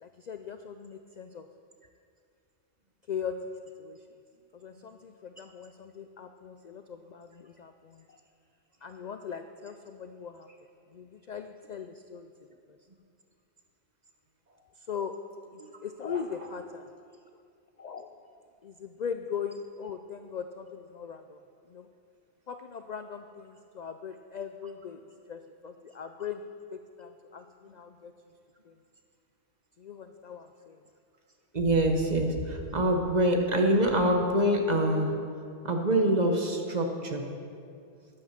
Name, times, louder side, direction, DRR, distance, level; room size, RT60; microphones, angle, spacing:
voice 1, 0.0-1.5 3.1-3.4 3.8-4.1 4.5-8.2 8.8-10.6 10.9-12.3 12.7-12.8 14.8-15.1 15.5-16.9 17.8-18.2 18.6-21.4 21.7-21.9 22.5-26.4 26.7-28.1 28.6-28.8 29.8-30.8, left 7 dB, 60° left, 7 dB, 0.4 m, -40 dB
voice 2, 31.5-35.2 35.6-37.3, right 1 dB, 40° right, 3 dB, 1.2 m, -25 dB
12.5 x 8.9 x 5.8 m, 2.4 s
omnidirectional pair, 1.2 m